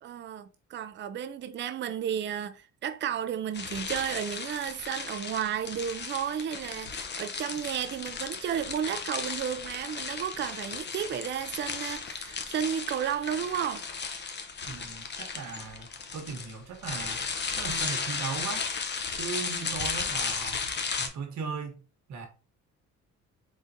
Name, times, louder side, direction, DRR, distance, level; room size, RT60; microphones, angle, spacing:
voice 1, 0.0-13.8, right 9 dB, 40° right, 0.4 m, -33 dB
sound 1, 3.5-21.1, left 5 dB, 35° left, 0.7 m, -35 dB
voice 2, 14.7-17.2 17.6-18.7 19.2-20.6 21.0-21.8 22.1-22.3, right 5 dB, 70° right, 1.1 m, -38 dB
3.8 x 3.7 x 2.6 m
cardioid pair, 90°, 30 cm